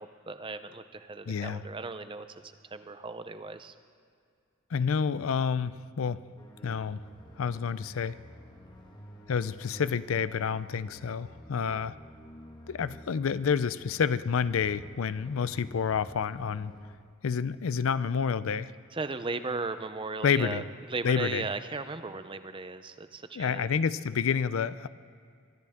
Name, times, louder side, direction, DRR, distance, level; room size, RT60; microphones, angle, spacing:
voice 1, 0.0-3.7 18.9-20.6 20.9-23.7, right 3 dB, 25° right, 11 dB, 0.6 m, -37 dB
voice 2, 1.3-1.6 4.7-6.2 6.6-7.0 7.4-8.2 9.3-12.0 12.7-16.7 17.2-18.7 20.2-20.6 21.0-21.4 23.3-24.9, left 6 dB, 90° left, 16 dB, 0.5 m, -29 dB
sound 1, 6.4-17.0, equal, 20° left, 1.4 m, -50 dB
23.0 x 13.0 x 3.6 m, 2.2 s
head